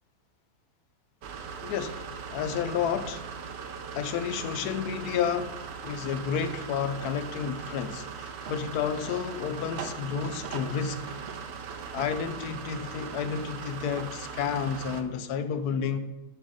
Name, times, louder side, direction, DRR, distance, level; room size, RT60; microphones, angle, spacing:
sound 1, 1.2-15.0, right 6 dB, 60° right, 0.8 m, -39 dB
voice 1, 1.6-3.2 3.9-11.2 11.9-16.0, left 7 dB, 90° left, 1.2 m, -31 dB
7.5 x 3.8 x 6.5 m
omnidirectional pair, 1.6 m